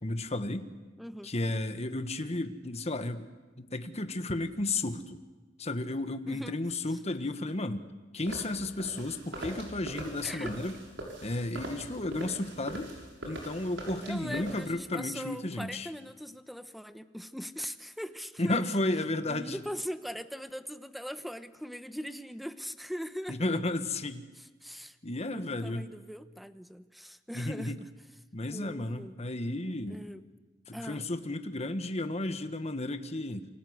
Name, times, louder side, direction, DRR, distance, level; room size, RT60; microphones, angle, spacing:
voice 1, 0.0-0.7 1.2-3.3 3.6-5.2 5.6-7.9 8.1-10.7 11.2-12.9 13.2-15.9 18.4-19.6 23.3-24.2 25.0-25.9 27.3-27.8 28.3-30.0 30.7-33.5, left 2 dB, 35° left, 9 dB, 1.4 m, -33 dB
voice 2, 1.0-1.3 6.3-6.5 6.9-7.0 10.2-10.5 14.0-18.6 19.2-23.6 24.3-27.9 28.4-29.2 29.9-30.2 30.7-31.1, equal, ahead, 11 dB, 0.9 m, -41 dB
sound 1, 8.3-14.7, right 1 dB, 75° right, 6.6 m, -42 dB
27.5 x 25.0 x 8.0 m, 1.2 s
head